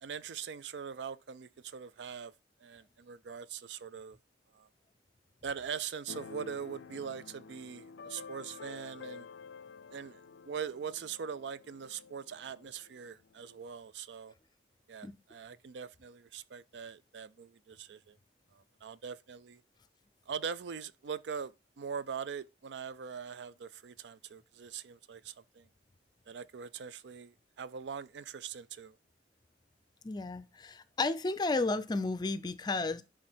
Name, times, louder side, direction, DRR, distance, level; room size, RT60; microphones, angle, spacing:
voice 1, 0.0-2.3 2.6-4.2 4.5-4.7 5.4-9.3 9.9-14.3 14.9-18.2 18.5-19.6 20.3-25.7 26.3-29.0, right 7 dB, 80° right, 0.4 m, -42 dB
Keyboard (musical), 6.1-13.6, left 5 dB, 85° left, 0.4 m, -50 dB
voice 2, 30.0-33.0, left 3 dB, 25° left, 0.4 m, -32 dB
10.5 x 3.7 x 4.3 m
head